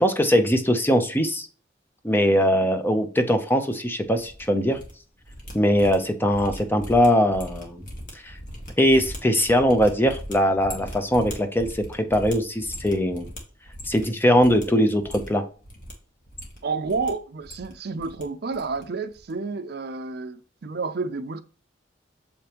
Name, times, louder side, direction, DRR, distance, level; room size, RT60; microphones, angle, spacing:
voice 1, 0.0-1.5 2.0-4.8 5.5-7.8 8.2-8.3 8.8-13.3 13.9-15.4, equal, 10° left, 0.7 m, -21 dB
sound 1, 4.2-4.9 5.2-14.1 14.4-14.6 15.0-15.9 16.3-17.1 17.4-18.2 18.5-18.8 19.1-19.3, equal, 45° left, 1.8 m, -40 dB
voice 2, 16.6-21.4, right 4 dB, 55° right, 0.5 m, -30 dB
6.8 x 5.1 x 3.0 m
head